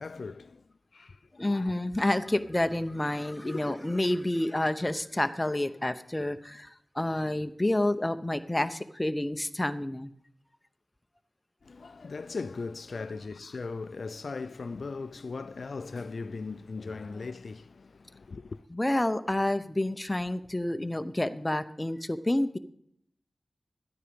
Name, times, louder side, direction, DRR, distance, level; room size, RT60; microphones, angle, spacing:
voice 1, 0.0-1.7 3.4-3.8 11.6-18.6, left 4 dB, 70° left, 0.4 m, -39 dB
voice 2, 1.4-10.1 18.7-22.6, left 1 dB, 15° left, 0.7 m, -29 dB
12.5 x 9.9 x 5.1 m
wide cardioid pair, 70°, 0 cm